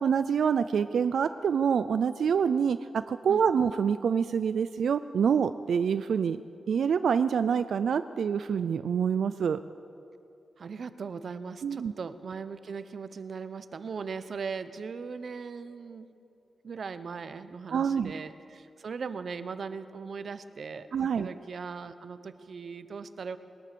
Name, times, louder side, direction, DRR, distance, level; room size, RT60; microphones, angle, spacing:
voice 1, 0.0-6.4 6.7-9.6 11.6-11.9 17.7-18.1 20.9-21.3, right 7 dB, 85° right, 12 dB, 0.4 m, -26 dB
voice 2, 10.6-16.1 16.6-23.4, right 5 dB, 55° right, 12 dB, 0.8 m, -39 dB
21.0 x 19.5 x 6.9 m, 2.7 s
wide cardioid pair, 170°, 0 cm